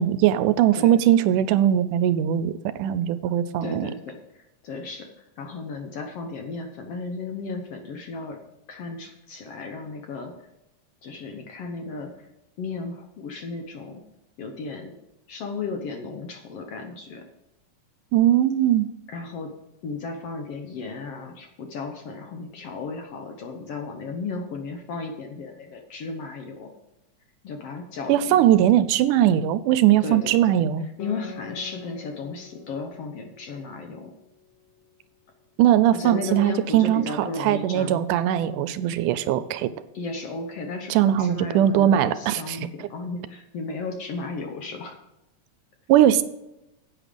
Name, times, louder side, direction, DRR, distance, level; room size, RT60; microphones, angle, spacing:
voice 1, 0.0-3.9 18.1-18.9 28.1-30.8 35.6-39.7 40.9-42.7 45.9-46.2, right 11 dB, 80° right, 14 dB, 2.0 m, -20 dB
voice 2, 3.6-5.1 5.4-8.4 8.7-10.3 11.0-12.3 12.6-14.0 14.4-14.9 15.3-17.3 19.1-19.5 19.8-26.7 27.4-28.4 30.0-30.4 31.0-34.1 35.9-38.0 39.9-45.0, left 4 dB, 65° left, 3 dB, 1.7 m, -34 dB
Guitar, 31.0-35.9, left 9 dB, 85° left, 2.6 m, -46 dB
10.0 x 8.7 x 5.2 m, 0.91 s
omnidirectional pair, 3.7 m